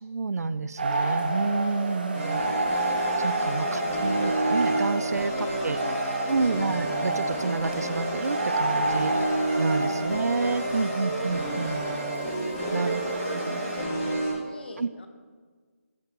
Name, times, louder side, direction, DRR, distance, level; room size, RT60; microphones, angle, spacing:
voice 1, 0.0-2.4 3.2-5.8 6.3-11.8 12.7-13.0 13.5-13.6 14.8-15.1, right 4 dB, 90° right, 15 dB, 0.4 m, -29 dB
sound 1, 0.8-13.8, right 2 dB, 35° right, 0.8 m, -30 dB
sound 2, 2.1-14.3, right 1 dB, 10° left, 0.9 m, -31 dB
voice 2, 3.4-4.4 5.2-6.6 12.7-15.1, left 2 dB, 40° left, 6 dB, 0.8 m, -41 dB
13.5 x 5.9 x 2.5 m, 1.5 s
figure-of-eight pair, 175°, 8 cm